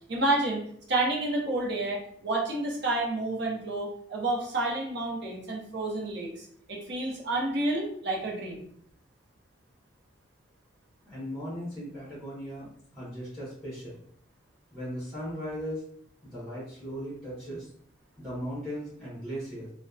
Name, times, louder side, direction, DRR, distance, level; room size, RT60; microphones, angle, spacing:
voice 1, 0.1-8.6, right 2 dB, 55° right, -2 dB, 0.7 m, -30 dB
voice 2, 11.0-14.0 14.7-15.8 16.2-17.7 18.2-19.7, equal, ahead, -8 dB, 0.8 m, -37 dB
2.7 x 2.1 x 2.3 m, 0.64 s
head